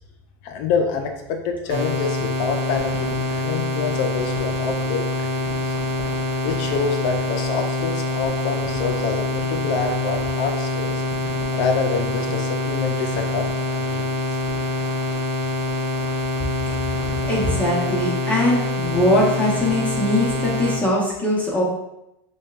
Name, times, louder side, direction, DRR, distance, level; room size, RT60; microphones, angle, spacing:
voice 1, 0.4-5.8 6.4-10.9 11.5-13.5 13.7-14.0, left 5 dB, 60° left, 4 dB, 0.5 m, -26 dB
sound 1, 1.7-20.8, left 2 dB, 55° right, 1.1 m, -25 dB
voice 2, 16.9-21.6, left 1 dB, 10° left, -4 dB, 0.9 m, -21 dB
6.2 x 2.3 x 2.4 m, 0.87 s
supercardioid pair, 120°, 12 cm